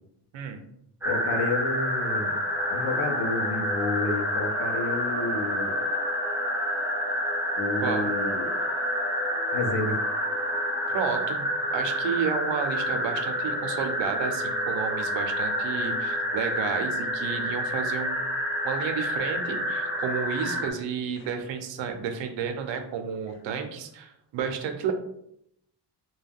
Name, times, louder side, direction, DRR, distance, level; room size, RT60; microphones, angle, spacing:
sound 1, 1.0-20.7, equal, 5° right, 0.3 m, -28 dB
voice 1, 1.1-2.3 2.7-5.8 7.6-8.5 9.5-10.0, left 2 dB, 70° left, 4 dB, 0.6 m, -30 dB
voice 2, 7.8-8.1 10.9-18.3 18.6-24.9, right 7 dB, 85° right, 5 dB, 0.6 m, -31 dB
2.2 x 2.2 x 3.4 m, 0.75 s
wide cardioid pair, 150°, 43 cm